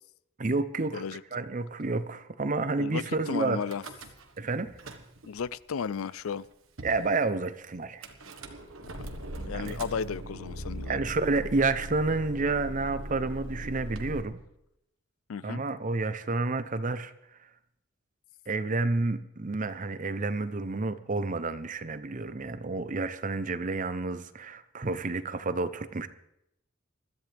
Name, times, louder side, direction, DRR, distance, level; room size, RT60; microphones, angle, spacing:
voice 1, 0.4-1.0 1.3-3.6 4.4-4.7 6.8-8.0 9.5-9.8 10.9-14.4 15.4-17.1 18.5-26.1, right 3 dB, 40° right, 0.7 m, -30 dB
voice 2, 2.8-3.8 5.2-6.4 9.0-9.1 9.4-11.0 15.3-15.6, left 6 dB, 85° left, 0.5 m, -34 dB
Car / Engine starting / Idling, 3.6-4.4 4.7-5.4 6.1-6.2 6.4-6.5 6.8-7.1 8.0-14.2, right 1 dB, 70° right, 1.4 m, -40 dB
21.0 x 13.5 x 3.4 m
head